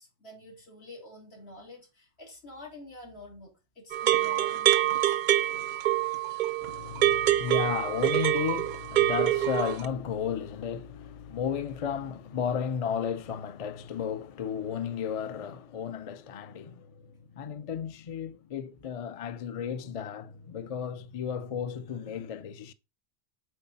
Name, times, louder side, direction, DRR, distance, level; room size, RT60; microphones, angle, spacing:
voice 1, 0.0-5.2, left 2 dB, 80° left, 2.8 m, -48 dB
sound 1, 3.9-9.9, right 13 dB, 55° right, 0.6 m, -26 dB
voice 2, 6.6-22.7, left 8 dB, 45° left, 0.5 m, -34 dB
8.1 x 3.8 x 4.0 m
omnidirectional pair, 1.1 m